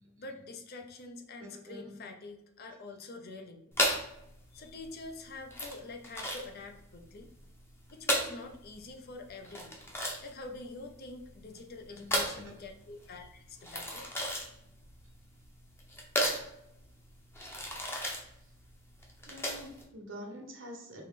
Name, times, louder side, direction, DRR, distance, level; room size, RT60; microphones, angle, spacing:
voice 1, 0.2-3.6 4.5-7.3 7.9-9.8 10.2-14.1, left 3 dB, 50° left, 5 dB, 0.6 m, -46 dB
voice 2, 1.7-2.0 12.0-12.1 19.3-21.0, equal, 65° right, 1 dB, 1.1 m, -46 dB
sound 1, 3.7-19.8, equal, 10° left, 0.7 m, -35 dB
4.2 x 3.0 x 3.6 m, 0.80 s
head